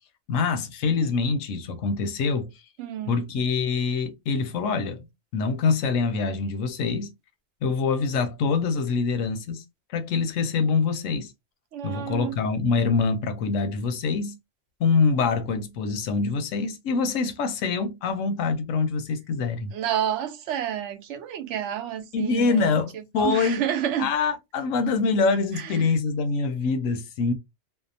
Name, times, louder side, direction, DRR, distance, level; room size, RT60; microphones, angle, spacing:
voice 1, 0.3-2.5 3.1-5.1 5.3-7.1 7.6-9.6 9.9-11.3 11.8-14.3 14.8-19.7 22.1-23.6 24.0-27.3, left 4 dB, 90° left, 1.0 m, -25 dB
voice 2, 2.8-3.1 11.7-12.4 19.7-22.7 22.9-24.1 25.5-25.8, right 10 dB, 70° right, 0.8 m, -29 dB
2.7 x 2.0 x 2.6 m
omnidirectional pair, 1.3 m